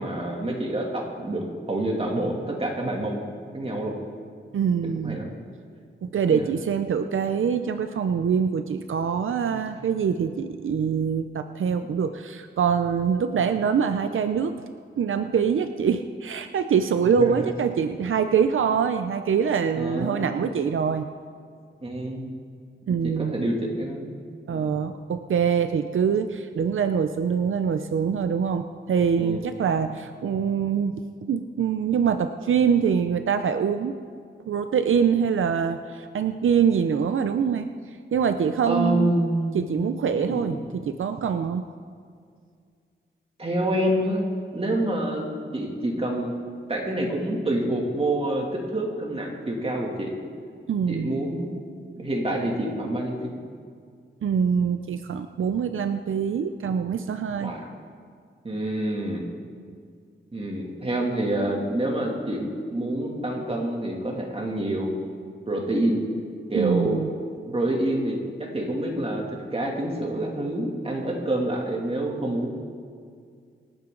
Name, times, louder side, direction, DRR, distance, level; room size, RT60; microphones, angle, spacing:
voice 1, 0.0-3.2 3.5-3.9 5.0-5.3 6.3-6.5 9.5-9.6 17.2-17.5 19.7-20.2 21.8-22.4 22.9-24.1 24.5-24.7 29.2-29.7 38.7-39.9 40.2-40.6 43.4-44.2 44.5-46.3 46.7-50.1 50.9-51.5 51.9-53.3 57.4-57.7 58.4-59.3 60.3-64.9 65.5-66.0 66.5-67.0 67.5-68.2 68.5-72.5, right 1 dB, 30° right, -1 dB, 2.5 m, -27 dB
voice 2, 4.5-5.2 6.0-14.6 15.0-21.1 22.9-23.4 24.5-31.0 31.3-33.9 34.5-37.7 38.1-39.1 39.5-41.7 50.7-51.1 54.2-57.5 66.5-67.1, right 7 dB, 85° right, 8 dB, 0.6 m, -24 dB
26.0 x 9.0 x 3.9 m, 2.1 s
wide cardioid pair, 120°, 20 cm